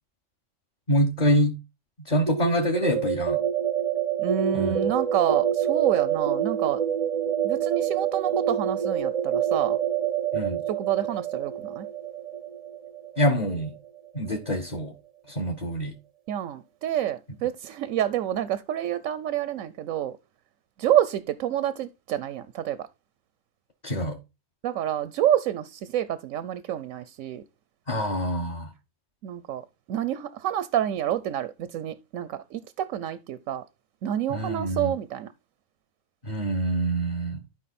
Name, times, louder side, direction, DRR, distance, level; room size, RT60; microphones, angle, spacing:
voice 1, 0.9-1.6 2.0-3.4 4.5-4.8 10.3-10.6 13.2-13.7 14.1-14.9 15.3-15.9 23.8-24.2 27.9-28.7 34.3-34.9 36.2-37.4, equal, 35° left, 1.3 m, -26 dB
sound 1, 2.3-14.0, right 8 dB, 40° right, 0.6 m, -27 dB
voice 2, 4.2-6.8 7.4-9.8 10.7-11.9 16.3-20.2 20.8-22.9 24.6-27.4 29.2-29.6 29.9-33.6 34.0-35.3, right 11 dB, 90° right, 1.0 m, -28 dB
12.5 x 5.1 x 4.2 m
omnidirectional pair, 1.3 m